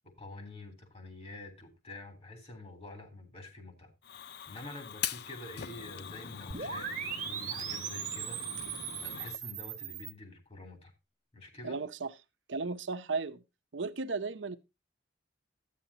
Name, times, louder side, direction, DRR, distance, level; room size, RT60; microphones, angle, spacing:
voice 1, 0.2-3.9 4.2-8.4 9.0-10.9 11.3-11.8, left 2 dB, 35° left, 3.4 m, -47 dB
Fire, 4.0-9.4, left 9 dB, 60° left, 0.5 m, -42 dB
sound 1, 6.5-10.1, right 9 dB, 45° right, 1.4 m, -38 dB
voice 2, 11.6-12.1 12.5-13.4 13.7-14.6, right 4 dB, 85° right, 0.8 m, -35 dB
13.0 x 9.6 x 2.8 m
head